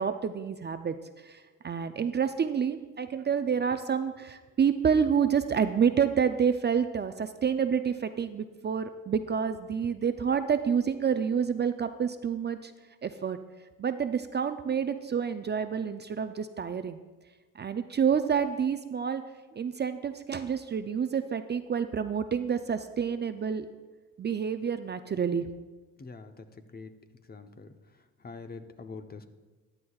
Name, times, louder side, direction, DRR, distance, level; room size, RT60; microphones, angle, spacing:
voice 1, 0.0-12.7 13.0-13.4 13.8-17.0 17.5-19.2 19.5-23.7 24.2-25.5, right 7 dB, 30° right, 9 dB, 0.5 m, -28 dB
voice 2, 26.0-26.5 26.7-26.9 27.3-27.7 28.2-29.3, left 4 dB, 30° left, 8 dB, 0.8 m, -44 dB
14.5 x 9.7 x 2.4 m, 1.3 s
supercardioid pair, 65°, 33 cm